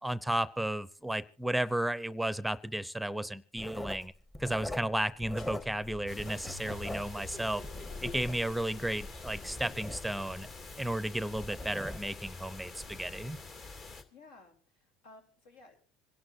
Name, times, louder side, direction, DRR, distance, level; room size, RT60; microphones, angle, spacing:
voice 1, 0.0-4.1 4.4-7.6 8.0-10.5 10.8-13.4, right 1 dB, ahead, 17 dB, 0.6 m, -33 dB
Writing, 3.6-5.9 6.2-8.6 9.0-12.3 12.7-13.0, left 1 dB, 20° left, 1.1 m, -43 dB
sound 1, 5.3-10.9, left 3 dB, 70° left, 6.2 m, -48 dB
sound 2, 6.1-14.0, left 3 dB, 50° left, 2.5 m, -47 dB
voice 2, 14.1-15.8, left 3 dB, 85° left, 3 dB, 3.4 m, -56 dB
26.0 x 11.0 x 2.6 m, 0.41 s
supercardioid pair, 90°, 0 cm